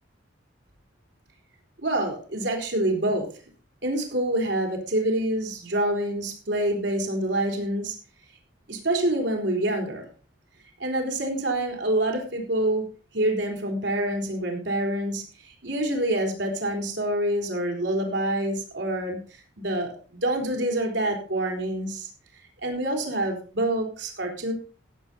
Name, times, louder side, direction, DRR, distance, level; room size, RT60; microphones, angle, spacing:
voice 1, 1.8-3.3 3.8-8.0 8.7-10.1 10.8-12.9 13.1-19.2 19.6-22.1 22.6-24.5, right 1 dB, 75° right, 2 dB, 4.1 m, -26 dB
16.0 x 8.1 x 4.3 m, 0.37 s
head